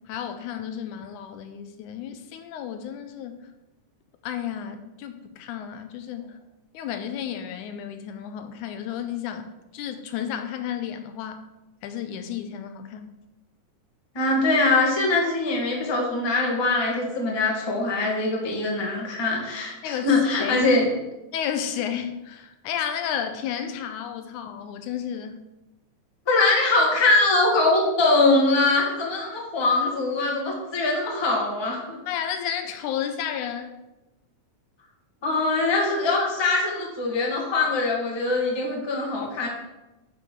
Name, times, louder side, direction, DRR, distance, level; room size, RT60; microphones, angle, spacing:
voice 1, 0.0-3.4 4.2-6.3 6.7-11.5 11.8-13.1 19.8-20.7 21.3-25.5 32.1-33.7 39.2-39.3, left 9 dB, 85° left, 8 dB, 2.1 m, -32 dB
voice 2, 14.1-20.9 26.3-32.0 35.2-39.5, left 2 dB, 15° left, -2 dB, 1.0 m, -22 dB
10.5 x 5.5 x 4.6 m, 1.0 s
omnidirectional pair, 3.5 m